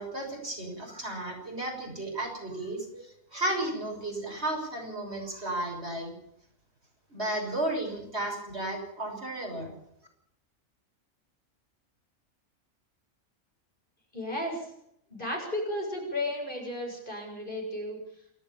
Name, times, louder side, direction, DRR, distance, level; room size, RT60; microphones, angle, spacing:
voice 1, 0.0-6.1 7.1-9.7, right 1 dB, 50° right, 1 dB, 6.8 m, -33 dB
voice 2, 14.1-14.7 15.1-18.0, left 1 dB, 40° left, 1 dB, 7.4 m, -34 dB
28.0 x 13.0 x 7.1 m, 0.73 s
omnidirectional pair, 1.4 m